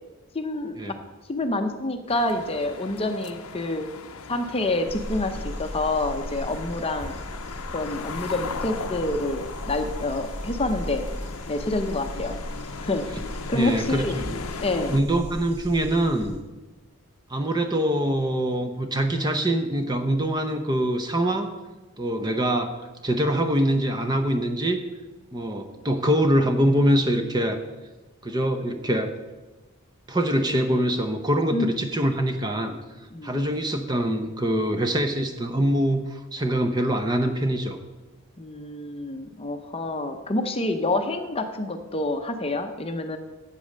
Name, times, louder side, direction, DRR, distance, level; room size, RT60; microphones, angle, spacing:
voice 1, 0.3-1.0 1.3-3.9 4.3-7.2 7.7-11.1 11.5-12.4 12.8-13.1 13.5-14.2 14.6-15.0 31.5-31.7 33.1-33.6 38.4-43.2, left 2 dB, 25° left, 6 dB, 0.7 m, -27 dB
sound 1, 2.1-15.0, left 5 dB, 75° left, 0.7 m, -38 dB
sound 2, 4.9-16.4, equal, 35° right, 3.2 m, -37 dB
voice 2, 13.5-14.4 14.9-16.4 17.3-21.5 22.0-24.8 25.3-27.6 28.2-29.1 30.1-32.7 33.2-37.8, right 1 dB, 20° right, 7 dB, 0.7 m, -24 dB
8.4 x 8.4 x 6.6 m, 1.2 s
head